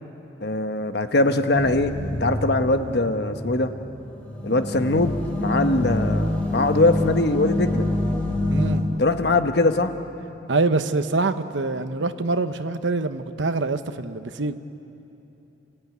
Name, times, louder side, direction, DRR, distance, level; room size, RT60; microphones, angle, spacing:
voice 1, 0.4-1.9 2.2-3.7 4.4-7.8 9.0-9.9, left 2 dB, 60° left, 8 dB, 1.1 m, -22 dB
sound 1, 1.5-8.8, left 1 dB, 5° left, 3.3 m, -26 dB
voice 2, 8.5-8.8 10.5-14.6, right 3 dB, 85° right, 10 dB, 0.9 m, -25 dB
30.0 x 15.0 x 9.4 m, 3.0 s
head